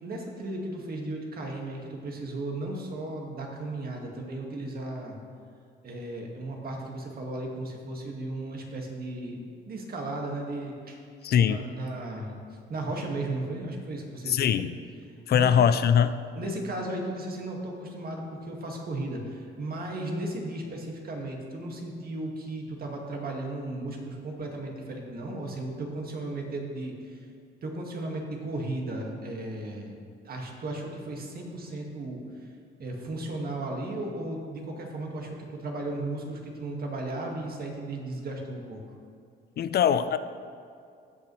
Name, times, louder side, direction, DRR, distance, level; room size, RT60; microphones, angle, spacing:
voice 1, 0.0-5.2 5.8-11.0 11.3-14.6 15.3-15.5 16.4-27.3 27.6-29.9 30.2-32.5 32.8-38.8, right 2 dB, 50° right, 0 dB, 1.8 m, -35 dB
voice 2, 11.2-11.6 14.3-14.7 15.3-16.2 39.6-40.2, left 8 dB, 55° left, 12 dB, 0.4 m, -22 dB
16.5 x 5.7 x 3.1 m, 2.3 s
cardioid pair, 90°, 20 cm